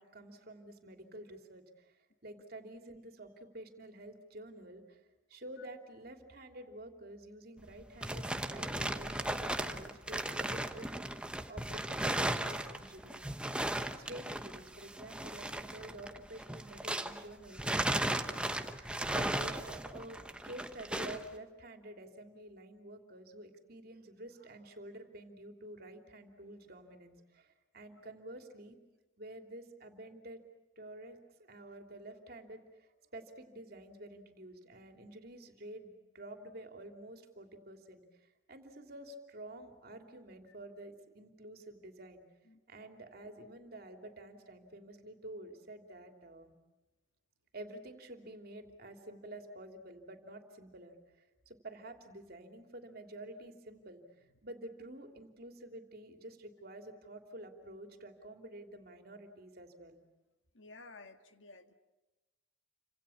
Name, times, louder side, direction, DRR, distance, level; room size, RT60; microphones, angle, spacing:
voice 1, 0.0-5.0 5.3-10.9 11.5-13.7 13.9-28.8 29.2-30.4 30.8-42.2 42.7-46.5 47.5-60.0, right 1 dB, 50° right, 5 dB, 3.0 m, -50 dB
sound 1, 7.6-17.2 17.5-21.3, right 1 dB, 5° right, 1.0 m, -36 dB
voice 2, 60.5-61.7, left 3 dB, 75° left, 8 dB, 1.7 m, -53 dB
29.0 x 26.0 x 7.2 m, 1.1 s
head